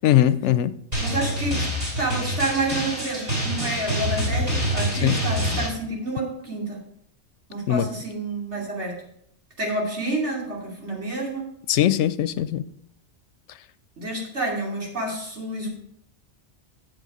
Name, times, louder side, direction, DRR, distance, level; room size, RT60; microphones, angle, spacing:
voice 1, 0.0-0.7 5.0-5.2 7.7-7.9 11.7-12.7, left 12 dB, 85° left, 15 dB, 0.9 m, -20 dB
Drum, 0.9-5.7, equal, 35° right, 3.9 m, -26 dB
voice 2, 1.0-1.7 2.0-6.8 7.5-9.0 9.6-11.5 14.0-15.7, right 2 dB, 75° right, -3 dB, 3.2 m, -29 dB
8.0 x 7.5 x 4.9 m, 0.73 s
omnidirectional pair, 1.2 m